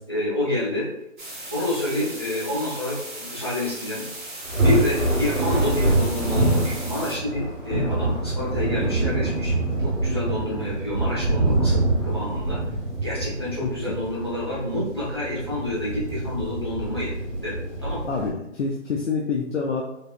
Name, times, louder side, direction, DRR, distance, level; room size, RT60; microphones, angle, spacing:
voice 1, 0.1-0.9 1.5-4.0 4.6-12.6 13.0-17.1 17.4-18.0, left 1 dB, 20° left, -9 dB, 0.5 m, -28 dB
sound 1, 1.2-7.2, right 1 dB, 40° right, 0.9 m, -37 dB
Thunder, 4.4-18.3, right 2 dB, 80° right, 1.1 m, -25 dB
voice 2, 13.6-14.0 18.1-19.8, left 5 dB, 70° left, 0 dB, 0.5 m, -27 dB
3.4 x 2.0 x 2.2 m, 0.81 s
figure-of-eight pair, 160°, 37 cm